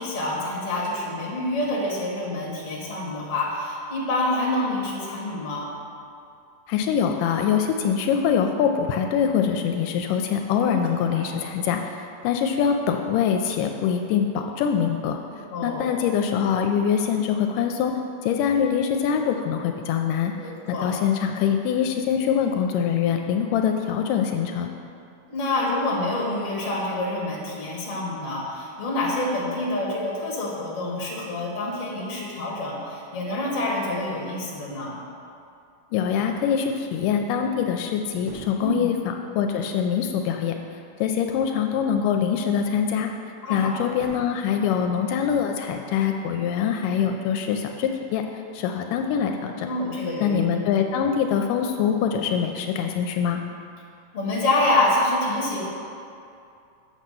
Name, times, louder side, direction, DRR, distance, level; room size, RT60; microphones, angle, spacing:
voice 1, 0.0-5.7 10.6-10.8 11.1-11.2 15.5-15.9 20.3-20.9 25.3-35.0 38.6-38.9 43.4-43.9 49.6-50.4 54.1-55.7, left 2 dB, 35° left, -4 dB, 1.5 m, -27 dB
voice 2, 6.7-15.2 15.6-20.3 20.7-24.7 35.9-40.6 41.0-43.1 43.5-49.7 50.2-53.4, left 7 dB, 80° left, 4 dB, 2.1 m, -24 dB
sound 1, 38.1-38.8 40.4-41.2 43.8-44.5, right 3 dB, 65° right, 2.3 m, -44 dB
7.4 x 5.8 x 6.7 m, 2.5 s
omnidirectional pair, 3.9 m